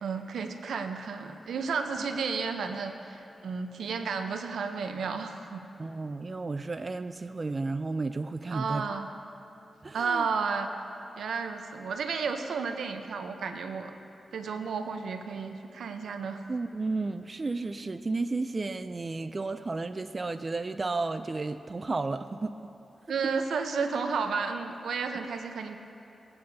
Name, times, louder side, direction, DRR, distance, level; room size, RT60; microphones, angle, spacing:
voice 1, 0.0-5.6 8.5-9.1 9.9-10.7 11.2-13.9 14.3-16.4 23.1-25.8, right 5 dB, 90° right, 6 dB, 0.7 m, -32 dB
voice 2, 5.8-8.9 9.8-10.3 16.5-22.6, right 3 dB, 40° right, 10 dB, 0.3 m, -32 dB
20.0 x 8.7 x 2.7 m, 2.8 s
cardioid pair, 65°, 0 cm